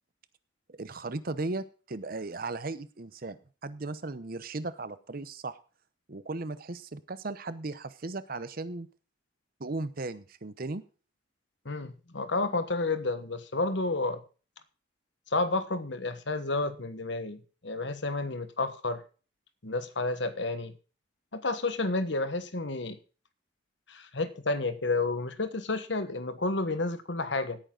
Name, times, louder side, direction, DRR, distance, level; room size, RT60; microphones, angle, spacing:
voice 1, 0.7-5.6 6.1-8.9 9.6-10.8, right 2 dB, 50° right, 14 dB, 0.8 m, -36 dB
voice 2, 11.6-14.2 15.3-19.0 19.6-20.7 21.3-23.0 23.9-27.6, left 3 dB, 70° left, 11 dB, 1.4 m, -31 dB
17.0 x 9.1 x 3.9 m, 0.36 s
head